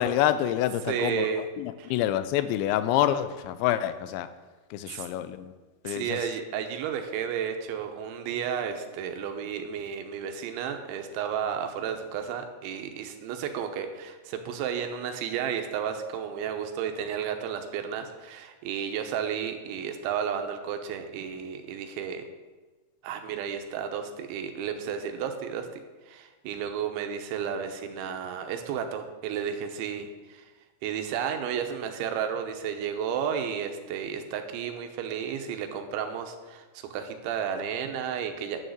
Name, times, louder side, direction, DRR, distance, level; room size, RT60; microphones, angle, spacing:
voice 1, 0.0-1.3 1.6-4.3 4.7-5.5 5.8-6.2, left 11 dB, 85° left, 12 dB, 2.8 m, -27 dB
voice 2, 0.9-1.5 1.8-1.9 4.9-5.1 5.8-22.2 23.0-30.4 30.8-38.6, right 8 dB, 85° right, 6 dB, 3.3 m, -32 dB
11.0 x 6.4 x 7.9 m, 1.3 s
omnidirectional pair, 5.3 m